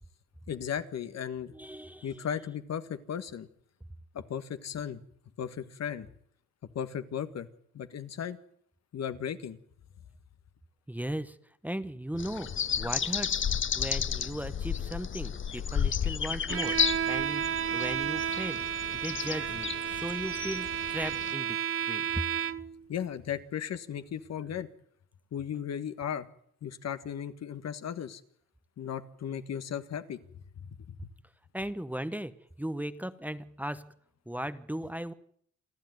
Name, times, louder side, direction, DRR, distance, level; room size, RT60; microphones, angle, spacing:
voice 1, 0.5-1.5 2.0-3.5 4.1-5.0 5.4-6.1 6.8-7.5 7.7-8.4 8.9-9.6 22.9-24.7 25.3-26.3 26.6-28.2 28.8-30.2 30.6-31.0, left 8 dB, 60° left, 10 dB, 1.6 m, -36 dB
voice 2, 1.5-2.3 10.9-11.4 11.6-12.5 12.8-13.4 13.7-18.6 19.0-21.6 21.9-22.2 31.5-33.9 34.3-35.1, right 1 dB, 5° right, 11 dB, 1.1 m, -37 dB
sound 1, 12.2-21.3, left 8 dB, 40° left, 1.0 m, -32 dB
Bowed string instrument, 16.5-22.8, right 9 dB, 45° right, 0.9 m, -32 dB
28.0 x 11.5 x 9.4 m, 0.67 s
cardioid pair, 90°, 30 cm